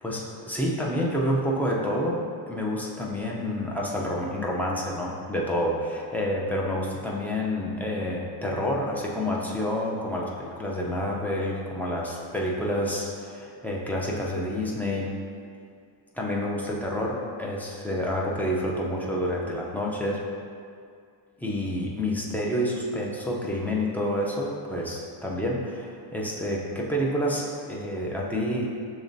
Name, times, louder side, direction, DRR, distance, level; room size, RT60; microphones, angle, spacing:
voice 1, 0.0-2.2 2.5-15.1 16.1-20.2 21.4-28.7, equal, 5° left, -4 dB, 0.5 m, -28 dB
6.7 x 3.0 x 2.6 m, 2.2 s
cardioid pair, 115°, 48 cm